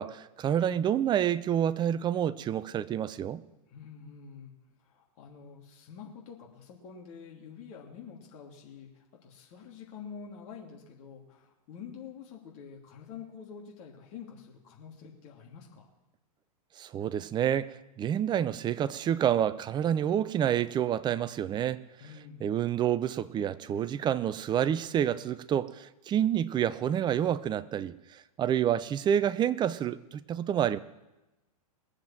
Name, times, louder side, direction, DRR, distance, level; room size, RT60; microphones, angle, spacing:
voice 1, 0.0-3.4 16.8-21.8 22.4-30.8, right 10 dB, 25° right, 0.6 m, -28 dB
voice 2, 3.7-4.5 4.8-15.9 22.0-22.5, left 6 dB, 50° left, 2.9 m, -47 dB
20.0 x 7.6 x 7.6 m
hypercardioid pair, 115°, 19 cm